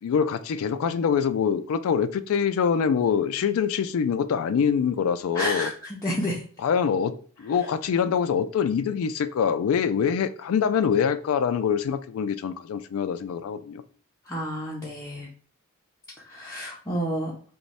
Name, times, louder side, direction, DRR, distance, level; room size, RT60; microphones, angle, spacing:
voice 1, 0.0-5.7 6.6-13.8, left 7 dB, 75° left, 0.3 m, -24 dB
voice 2, 5.3-5.7 6.0-6.4 14.3-15.3 16.3-17.3, equal, 15° left, 0.5 m, -29 dB
3.0 x 2.1 x 4.0 m
head